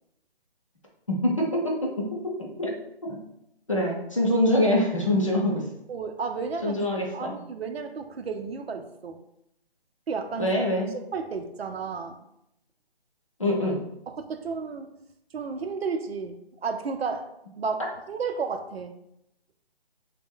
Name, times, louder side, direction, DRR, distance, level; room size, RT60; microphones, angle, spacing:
voice 1, 1.1-2.7 3.1-3.2 3.7-5.7 6.6-7.3 10.4-10.9 13.4-13.8, left 1 dB, 35° left, -3 dB, 0.5 m, -25 dB
voice 2, 5.9-6.8 7.1-9.2 10.1-10.5 10.9-12.2 14.1-14.9 15.3-17.3 17.6-19.0, right 5 dB, 75° right, 7 dB, 0.5 m, -32 dB
3.3 x 2.1 x 3.5 m, 0.79 s
hypercardioid pair, 175°, 31 cm